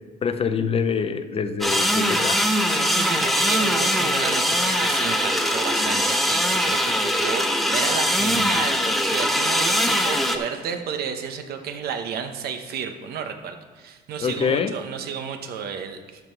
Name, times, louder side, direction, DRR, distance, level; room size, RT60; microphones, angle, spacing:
voice 1, 0.2-2.6 14.2-14.7, left 6 dB, 35° left, 10 dB, 0.6 m, -25 dB
sound 1, 1.6-10.4, equal, ahead, 0.8 m, -22 dB
voice 2, 2.7-8.8 9.1-16.0, right 7 dB, 65° right, 6 dB, 1.0 m, -32 dB
12.0 x 5.6 x 4.6 m, 1.4 s
cardioid pair, 110°, 17 cm